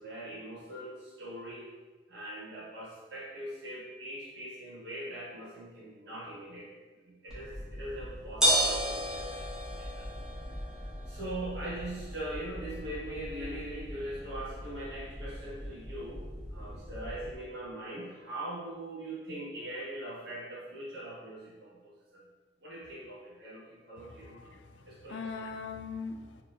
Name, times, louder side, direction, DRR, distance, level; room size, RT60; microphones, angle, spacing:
voice 1, 0.0-1.7 2.1-6.8 7.0-10.1 11.0-16.2 16.5-22.3 22.6-24.5 24.8-25.2, right 1 dB, 65° right, -7 dB, 1.4 m, -41 dB
sound 1, 7.3-17.3, equal, 5° right, 1.1 m, -35 dB
voice 2, 24.2-24.8 25.1-26.4, left 4 dB, 80° left, 5 dB, 0.4 m, -40 dB
4.6 x 2.9 x 2.5 m, 1.3 s
head